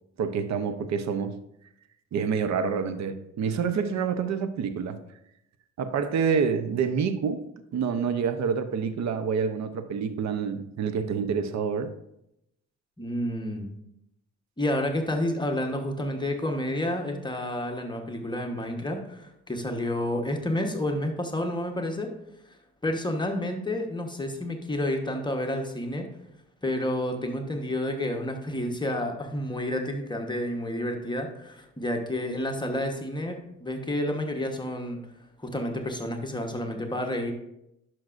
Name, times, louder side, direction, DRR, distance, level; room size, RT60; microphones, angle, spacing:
voice 1, 0.2-1.4 2.1-5.0 5.8-7.4 7.7-11.9, right 6 dB, 65° right, 10 dB, 0.8 m, -27 dB
voice 2, 13.0-13.7 14.6-22.1 22.8-26.1 26.6-35.0 35.4-37.3, left 1 dB, 15° left, 2 dB, 1.1 m, -30 dB
10.5 x 6.1 x 2.6 m, 0.80 s
cardioid pair, 90°, 30 cm